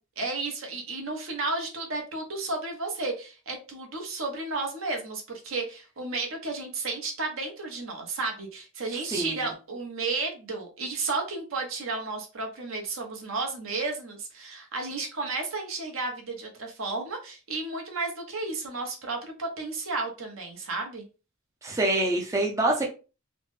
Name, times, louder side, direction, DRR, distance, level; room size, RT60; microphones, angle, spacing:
voice 1, 0.2-21.0, right 3 dB, 65° right, 2 dB, 0.9 m, -33 dB
voice 2, 21.6-22.9, right 2 dB, 15° right, 0 dB, 0.4 m, -25 dB
3.1 x 2.0 x 3.1 m, 0.33 s
head